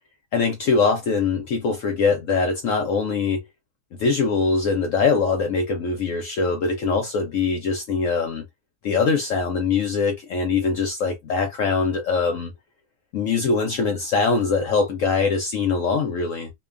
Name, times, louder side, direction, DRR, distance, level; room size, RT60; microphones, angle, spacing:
voice 1, 0.3-3.4 4.0-8.4 8.8-12.5 13.1-16.5, left 4 dB, 70° left, 0.7 m, -22 dB
2.9 x 2.2 x 2.3 m
omnidirectional pair, 1.8 m